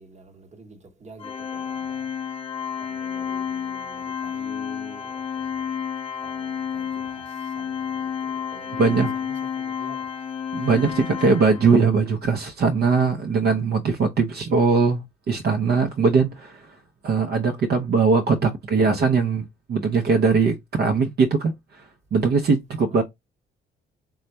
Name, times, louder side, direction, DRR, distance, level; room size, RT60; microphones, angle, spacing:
voice 1, 0.0-2.1 2.8-5.7 6.2-10.2 22.9-23.0, right 3 dB, 35° right, 1.0 m, -47 dB
Organ, 1.2-11.9, left 8 dB, 30° left, 0.8 m, -31 dB
voice 2, 8.8-9.1 10.5-16.6 17.0-21.8 22.1-23.0, right 4 dB, 55° right, 0.7 m, -20 dB
3.3 x 2.3 x 4.0 m
cardioid pair, 90°, 20 cm